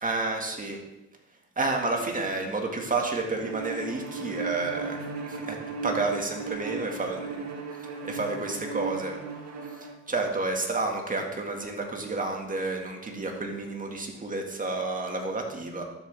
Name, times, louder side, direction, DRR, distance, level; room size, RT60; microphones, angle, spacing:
voice 1, 0.0-0.8 1.6-7.5 8.0-9.2 9.8-15.8, right 3 dB, 25° right, 2 dB, 2.0 m, -30 dB
Bowed string instrument, 3.4-10.0, right 4 dB, 60° right, 1.5 m, -36 dB
12.0 x 7.1 x 3.5 m, 0.96 s
cardioid pair, 90°, 30 cm